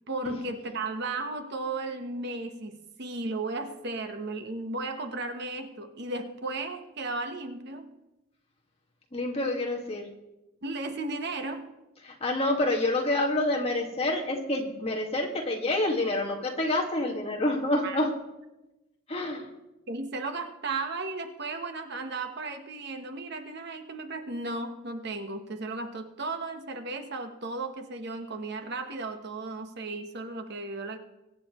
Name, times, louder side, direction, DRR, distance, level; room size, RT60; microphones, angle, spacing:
voice 1, 0.1-7.9 10.6-11.7 17.8-18.0 19.9-31.0, right 3 dB, 55° right, 6 dB, 1.2 m, -35 dB
voice 2, 9.1-10.1 12.0-18.1 19.1-19.5, left 1 dB, 30° left, -1 dB, 1.9 m, -28 dB
23.5 x 9.6 x 3.1 m, 1.0 s
head